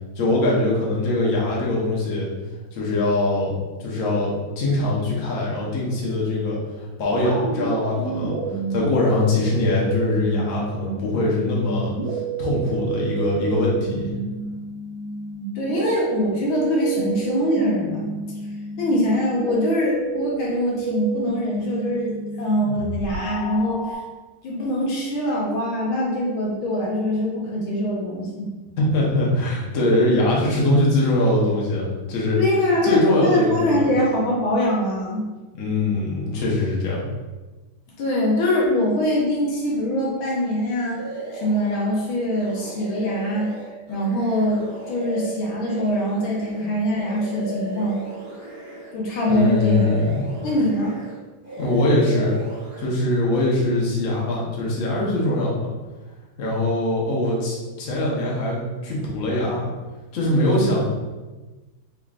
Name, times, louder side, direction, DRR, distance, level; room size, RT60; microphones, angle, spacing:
voice 1, 0.2-2.3 2.7-3.5 3.8-6.6 7.0-8.3 8.7-14.1 28.8-32.4 32.8-33.9 35.5-37.0 49.3-50.2 51.6-52.3 52.8-55.7 56.4-59.7 60.1-60.8, left 2 dB, 55° left, -4 dB, 1.0 m, -22 dB
sound 1, 7.1-23.9, right 4 dB, 70° right, 1.0 m, -30 dB
voice 2, 15.5-18.1 18.8-22.1 22.4-24.0 24.4-28.5 32.4-35.3 38.0-41.0 41.3-43.6 43.9-48.0 48.9-49.9 50.4-51.0, equal, 80° left, -4 dB, 1.7 m, -23 dB
sound 2, 40.9-41.9 42.3-48.9 49.2-51.2 51.4-52.9, right 1 dB, 50° right, 0.3 m, -35 dB
3.6 x 3.5 x 2.4 m, 1.2 s
omnidirectional pair, 2.3 m